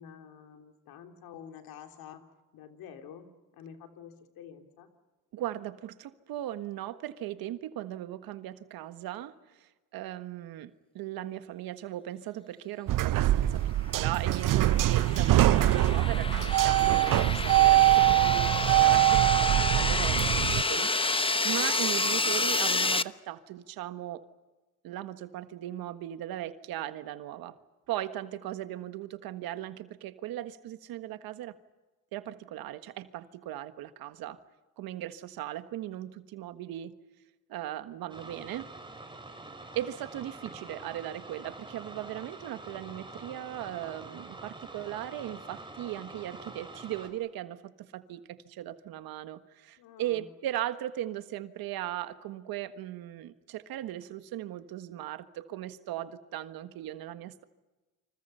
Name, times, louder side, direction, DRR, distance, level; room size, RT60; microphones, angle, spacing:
voice 1, 0.0-2.3 2.5-4.9 49.8-50.3, left 8 dB, 85° left, 5 dB, 3.4 m, -48 dB
voice 2, 5.3-20.3 20.7-24.2 24.8-27.6 27.9-31.5 32.1-34.4 34.8-36.9 37.5-38.7 39.7-57.4, right 13 dB, 85° right, 11 dB, 1.5 m, -38 dB
sound 1, 12.9-20.6, right 15 dB, 65° right, 0.7 m, -23 dB
sound 2, 14.1-23.0, left 3 dB, 15° left, 1.0 m, -30 dB
sound 3, 38.1-47.1, right 2 dB, 15° right, 5.9 m, -46 dB
29.5 x 26.5 x 5.7 m, 1.2 s
supercardioid pair, 75°, 35 cm